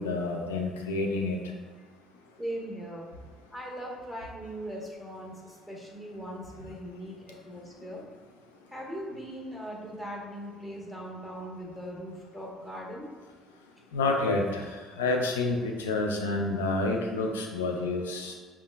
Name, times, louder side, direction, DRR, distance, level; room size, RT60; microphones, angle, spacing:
voice 1, 0.0-1.4 13.9-18.3, left 2 dB, 85° left, 2 dB, 0.4 m, -29 dB
voice 2, 2.4-3.1 3.5-8.0 8.7-13.1, equal, 5° left, -3 dB, 1.0 m, -40 dB
5.1 x 2.2 x 2.2 m, 1.5 s
hypercardioid pair, 55°, 0 cm